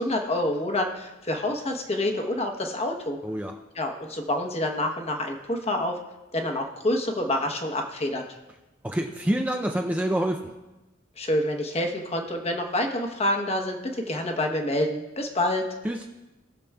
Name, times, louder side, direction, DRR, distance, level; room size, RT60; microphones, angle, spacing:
voice 1, 0.0-3.2 3.7-6.0 6.3-8.2 11.2-15.6, left 1 dB, 30° left, 3 dB, 1.0 m, -27 dB
voice 2, 3.2-3.6 8.8-10.4 15.8-16.0, right 1 dB, 10° right, 2 dB, 0.4 m, -26 dB
20.0 x 6.8 x 2.3 m, 1.1 s
head